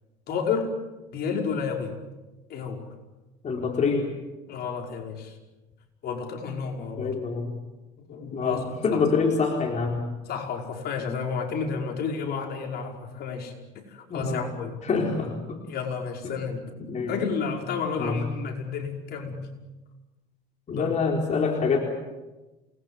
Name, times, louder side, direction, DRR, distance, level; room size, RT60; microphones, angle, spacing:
voice 1, 0.3-0.7 1.1-2.0 2.5-2.9 4.5-5.4 6.0-7.2 8.0-9.0 10.3-13.5 13.9-14.8 15.2-15.3 15.7-16.6 17.1-19.5 20.7-20.9, left 5 dB, 55° left, 2 dB, 5.3 m, -31 dB
voice 2, 3.4-4.1 7.0-7.6 8.3-10.0 14.1-14.5 14.8-15.6 16.2-16.3 16.8-17.2 18.0-18.2 20.7-21.8, left 4 dB, 35° left, 1 dB, 4.1 m, -26 dB
28.0 x 20.5 x 8.1 m, 1.1 s
supercardioid pair, 100°, 20 cm